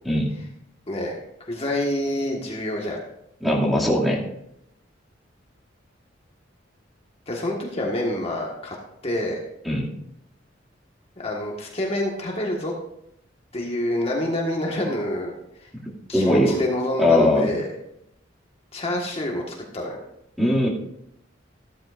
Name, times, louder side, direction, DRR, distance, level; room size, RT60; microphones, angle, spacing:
voice 1, 0.0-0.4 3.4-4.2 9.6-9.9 16.1-16.6 17.0-17.5 20.4-20.7, left 1 dB, ahead, -4 dB, 2.4 m, -20 dB
voice 2, 1.5-3.0 7.3-8.7 9.0-9.4 11.2-12.7 13.5-15.3 15.6-15.7 16.1-17.7 18.7-20.0, left 1 dB, 30° left, -1 dB, 1.6 m, -27 dB
14.5 x 13.0 x 2.6 m, 0.78 s
head